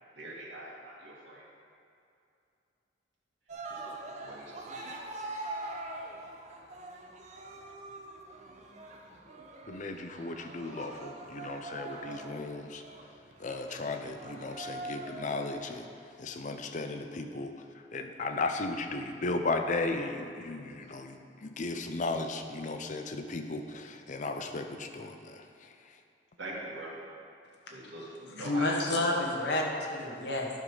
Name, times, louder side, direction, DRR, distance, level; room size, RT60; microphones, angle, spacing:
voice 1, 0.1-1.5 3.7-4.9 20.8-21.0 26.4-27.0 27.7-29.3, right 1 dB, 90° right, -4 dB, 2.2 m, -43 dB
Cheering, 3.5-15.9, right 2 dB, 40° right, 0.8 m, -43 dB
voice 2, 9.7-12.8 13.4-15.9 16.2-17.5 17.9-25.4, left 3 dB, 45° left, 6 dB, 0.6 m, -35 dB
voice 3, 28.4-30.5, left 2 dB, 65° left, -1 dB, 1.4 m, -29 dB
11.5 x 5.1 x 5.6 m, 2.5 s
head